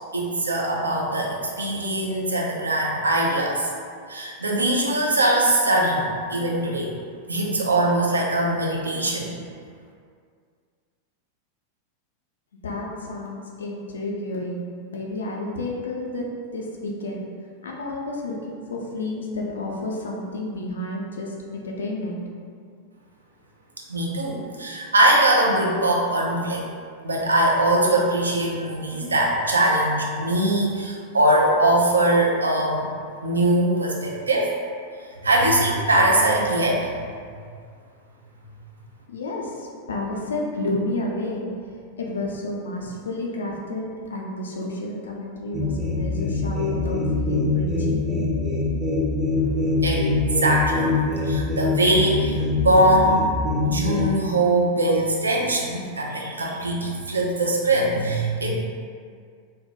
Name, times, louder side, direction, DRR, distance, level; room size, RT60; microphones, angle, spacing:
voice 1, 0.1-3.7 4.1-6.9 7.3-9.4 23.9-26.7 27.0-32.9 33.2-34.5 35.2-36.9 49.8-50.9 51.2-53.3 53.6-58.5, right 1 dB, 75° right, -2 dB, 0.4 m, -21 dB
voice 2, 12.6-16.3 16.5-17.2 17.6-22.2 39.1-41.5 42.0-48.1, left 2 dB, 65° left, -1 dB, 0.4 m, -31 dB
sound 1, 45.5-54.1, left 3 dB, 10° right, 0.5 m, -24 dB
2.2 x 2.1 x 2.7 m, 2.1 s
figure-of-eight pair, 90°, 0 cm